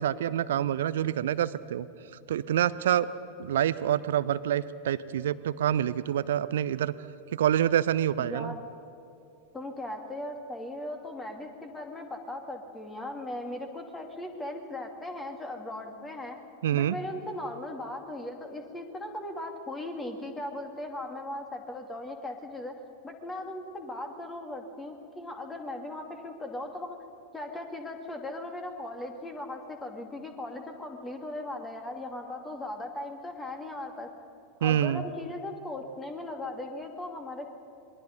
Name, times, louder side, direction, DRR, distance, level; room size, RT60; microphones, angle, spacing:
voice 1, 0.0-1.9 2.3-3.1 3.4-6.9 7.3-8.5 16.6-17.0 34.6-35.0, right 11 dB, 60° right, 16 dB, 0.8 m, -27 dB
voice 2, 8.2-8.6 9.5-16.4 16.7-22.7 23.0-27.0 27.3-34.1 34.6-37.5, left 1 dB, 15° left, 4 dB, 2.7 m, -38 dB
27.0 x 22.0 x 5.4 m, 2.9 s
figure-of-eight pair, 90°, 0 cm